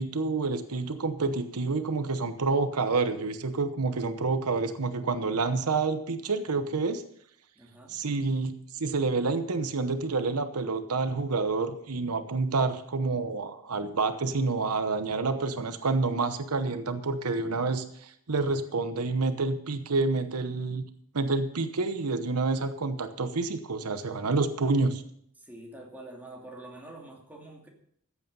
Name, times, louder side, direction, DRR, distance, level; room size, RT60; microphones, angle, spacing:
voice 1, 0.0-7.0 7.9-20.8 21.1-25.0, right 3 dB, 85° right, 9 dB, 0.9 m, -28 dB
voice 2, 7.5-8.0 25.4-27.7, right 2 dB, 10° right, -1 dB, 2.7 m, -46 dB
14.5 x 8.4 x 5.5 m, 0.67 s
head